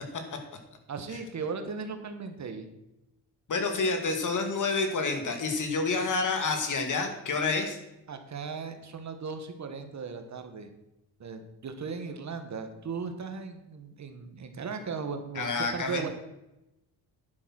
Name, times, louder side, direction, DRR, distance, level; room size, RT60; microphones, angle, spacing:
voice 1, 0.9-2.7 8.1-10.7 11.2-16.1, right 5 dB, 45° right, 7 dB, 1.5 m, -37 dB
voice 2, 3.5-7.8 15.4-16.1, left 4 dB, 50° left, 5 dB, 2.4 m, -28 dB
10.5 x 8.2 x 6.4 m, 0.91 s
cardioid pair, 110°, 39 cm